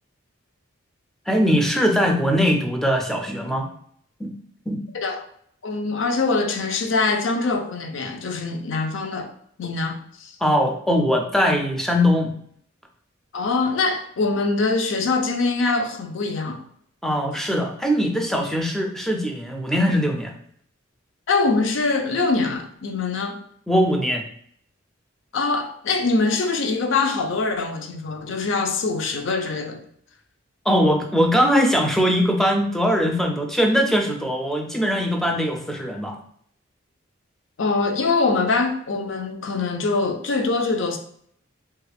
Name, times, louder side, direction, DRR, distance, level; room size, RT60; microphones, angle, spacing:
voice 1, 1.3-3.7 4.2-4.3 4.7-4.8 10.4-12.3 17.0-20.3 23.7-24.2 30.7-36.2, equal, ahead, 0.3 m, -21 dB
voice 2, 5.6-9.3 9.6-10.3 13.3-16.6 21.3-23.4 25.3-29.8 37.6-41.0, left 3 dB, 65° left, 0.5 m, -23 dB
3.0 x 2.3 x 3.3 m
head